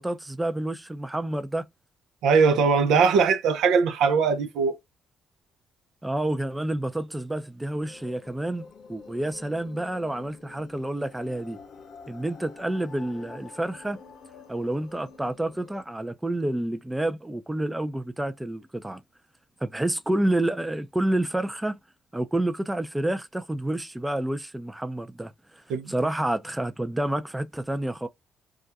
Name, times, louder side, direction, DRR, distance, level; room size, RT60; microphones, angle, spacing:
voice 1, 0.0-1.7 6.0-11.6 12.1-14.0 14.5-19.0 19.6-21.8 22.1-25.3 25.9-28.1, right 1 dB, 10° right, 0.4 m, -29 dB
voice 2, 2.2-4.8 25.7-25.9, right 5 dB, 85° right, 0.5 m, -21 dB
sound 1, 7.8-15.8, left 5 dB, 60° left, 0.9 m, -48 dB
2.3 x 2.1 x 2.7 m
cardioid pair, 90°, 0 cm